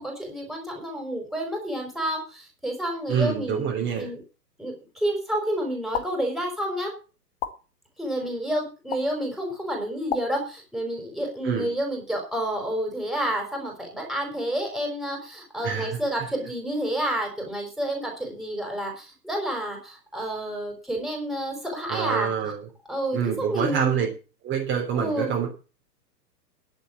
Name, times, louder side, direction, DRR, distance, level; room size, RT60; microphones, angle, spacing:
voice 1, 0.0-4.2 4.6-6.9 8.0-22.3 22.9-24.0 25.0-25.3, right 1 dB, ahead, 1 dB, 5.0 m, -29 dB
voice 2, 3.1-4.1 11.4-11.7 15.6-16.0 21.9-22.7 23.1-24.1 24.4-25.5, right 7 dB, 20° right, -1 dB, 3.6 m, -26 dB
sound 1, 5.9-6.1 7.4-7.5 8.9-9.0 10.1-10.2, left 10 dB, 40° left, 2.0 m, -29 dB
11.5 x 8.1 x 7.2 m, 0.34 s
hypercardioid pair, 125°, 49 cm